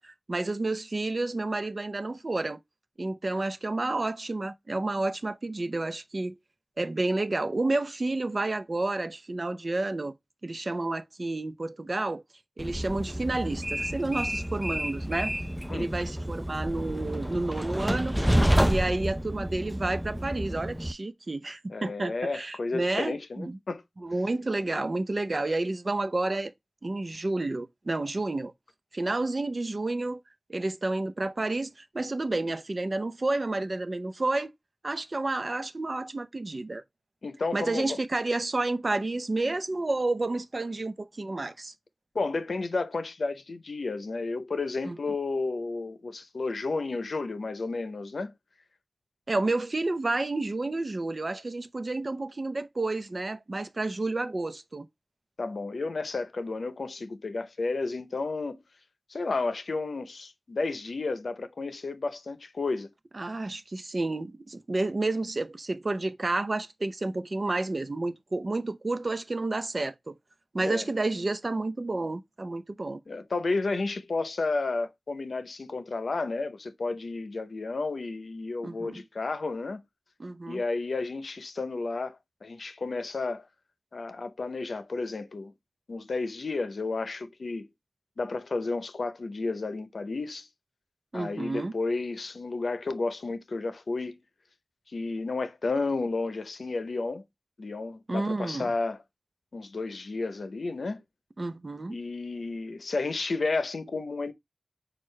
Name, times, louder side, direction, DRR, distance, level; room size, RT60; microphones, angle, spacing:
voice 1, 0.0-2.6 3.0-6.4 6.8-10.1 10.4-12.2 12.6-15.3 15.7-18.2 18.7-23.6 24.0-26.5 26.8-28.5 28.9-30.2 30.5-34.5 34.8-36.8 37.5-41.7 44.8-45.0 49.3-54.9 63.1-70.2 70.5-73.0 78.6-79.0 80.2-80.6 91.1-91.7 98.1-98.7 101.4-102.0, right 2 dB, 50° right, 0.6 m, -30 dB
Train, 12.6-20.9, equal, 10° right, 0.4 m, -29 dB
voice 2, 21.7-23.8 37.2-38.0 42.1-48.3 55.4-58.6 59.1-62.9 70.6-70.9 73.1-79.8 80.5-83.5 83.9-85.5 85.9-87.7 88.2-90.5 91.1-94.2 94.9-97.2 97.6-99.0 99.5-101.0 101.9-104.3, left 3 dB, 85° left, 0.6 m, -32 dB
6.4 x 2.4 x 3.2 m
wide cardioid pair, 55°, 0 cm